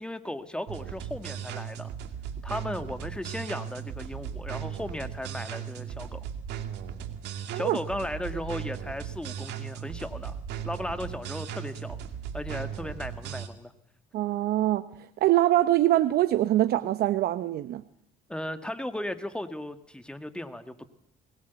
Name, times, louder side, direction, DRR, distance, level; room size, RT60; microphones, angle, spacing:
voice 1, 0.0-1.9 2.4-6.2 7.5-10.4 10.6-12.0 12.3-13.7 18.3-20.9, left 1 dB, 5° left, 9 dB, 1.8 m, -36 dB
sound 1, 0.7-13.5, right 8 dB, 85° right, 2.2 m, -37 dB
voice 2, 14.1-17.8, right 14 dB, 70° right, 13 dB, 0.8 m, -24 dB
22.0 x 19.5 x 8.2 m, 0.70 s
cardioid pair, 110°, 17 cm